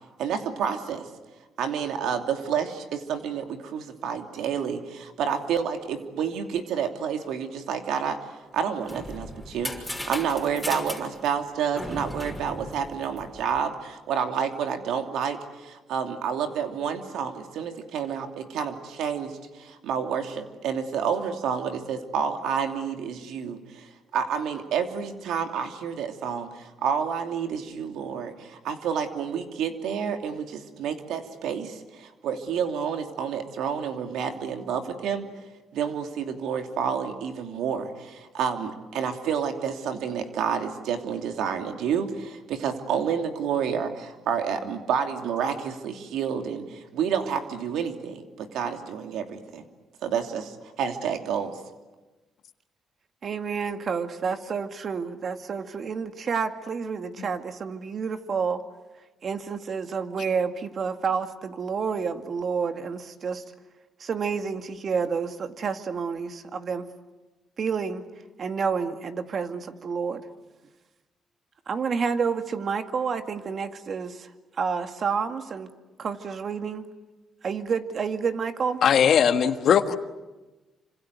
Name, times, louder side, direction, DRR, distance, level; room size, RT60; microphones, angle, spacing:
voice 1, 0.2-1.1 1.6-8.2 8.5-9.7 10.1-35.3 35.7-49.6 50.0-51.6, right 7 dB, 85° right, 5 dB, 2.8 m, -29 dB
sound 1, 8.6-13.6, left 1 dB, ahead, 5.8 m, -37 dB
voice 2, 53.2-58.6 59.2-63.4 64.0-66.9 67.6-68.0 68.4-70.2 71.7-74.3 74.6-75.7 76.0-76.9 77.4-78.8, right 5 dB, 50° right, 7 dB, 2.2 m, -29 dB
voice 3, 78.8-80.0, left 8 dB, 65° left, 9 dB, 1.5 m, -19 dB
27.5 x 26.0 x 8.2 m, 1.2 s
cardioid pair, 90°, 0 cm